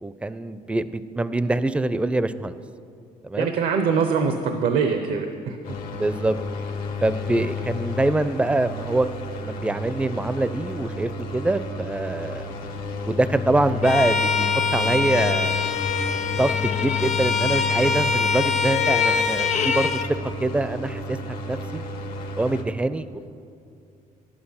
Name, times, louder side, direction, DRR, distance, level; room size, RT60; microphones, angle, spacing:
voice 1, 0.0-2.6 3.2-3.5 5.9-6.4 7.0-9.1 9.4-12.5 13.1-15.7 16.4-21.8 22.4-23.3, right 2 dB, 10° right, 14 dB, 0.4 m, -24 dB
voice 2, 3.4-5.6, right 6 dB, 80° right, 6 dB, 0.7 m, -23 dB
sound 1, 5.6-22.6, left 4 dB, 85° left, 1.3 m, -31 dB
Bowed string instrument, 13.8-20.1, left 5 dB, 55° left, 0.6 m, -24 dB
11.0 x 8.8 x 5.6 m, 2.5 s
cardioid pair, 90°, 15 cm